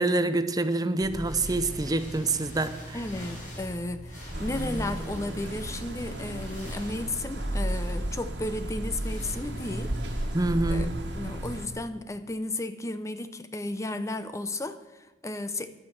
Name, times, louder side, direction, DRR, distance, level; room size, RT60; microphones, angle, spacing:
voice 1, 0.0-3.0 10.3-10.9, right 2 dB, 20° right, 11 dB, 0.6 m, -26 dB
sound 1, 1.0-11.7, equal, 50° left, 5.3 m, -37 dB
voice 2, 2.9-9.9 10.7-15.7, left 2 dB, 20° left, 11 dB, 0.6 m, -34 dB
sound 2, 4.3-11.7, right 1 dB, 75° right, 1.7 m, -35 dB
11.5 x 9.0 x 7.8 m, 1.1 s
head